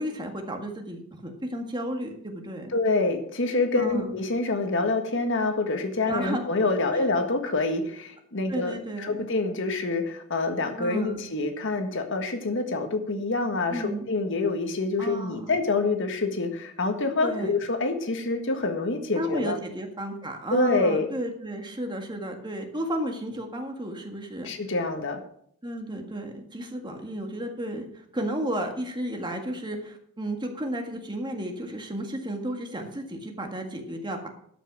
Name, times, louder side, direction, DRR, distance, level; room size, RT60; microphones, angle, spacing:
voice 1, 0.0-2.7 3.8-4.1 6.1-6.4 6.9-7.1 8.5-9.3 10.8-11.2 13.7-14.1 15.0-15.6 17.2-17.5 19.1-24.5 25.6-34.3, right 1 dB, 20° right, 3 dB, 1.7 m, -33 dB
voice 2, 2.7-19.6 20.5-21.1 24.4-25.2, left 3 dB, 60° left, 6 dB, 1.6 m, -26 dB
12.0 x 6.0 x 6.1 m, 0.66 s
head